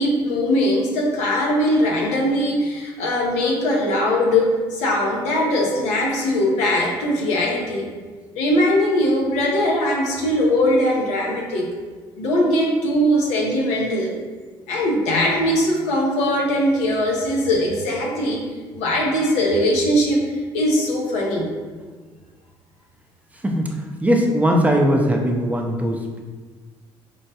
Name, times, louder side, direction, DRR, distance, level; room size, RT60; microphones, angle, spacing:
voice 1, 0.0-7.9 8.3-11.8 12.2-14.1 14.7-18.5 18.7-21.6, left 1 dB, 80° left, -1 dB, 0.7 m, -20 dB
voice 2, 23.4-26.2, equal, 15° right, 1 dB, 0.5 m, -20 dB
4.6 x 2.1 x 2.8 m, 1.4 s
supercardioid pair, 70°, 11 cm